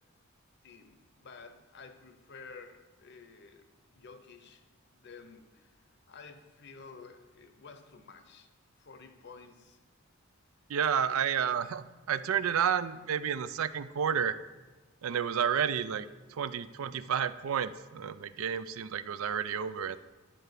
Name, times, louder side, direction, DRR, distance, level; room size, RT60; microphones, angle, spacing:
voice 1, 0.6-3.7 3.9-4.6 4.9-8.5 8.8-9.8, left 4 dB, 50° left, 9 dB, 0.7 m, -52 dB
voice 2, 10.7-14.3 15.0-20.0, right 8 dB, 75° right, 14 dB, 0.4 m, -31 dB
10.0 x 4.5 x 6.6 m, 1.2 s
head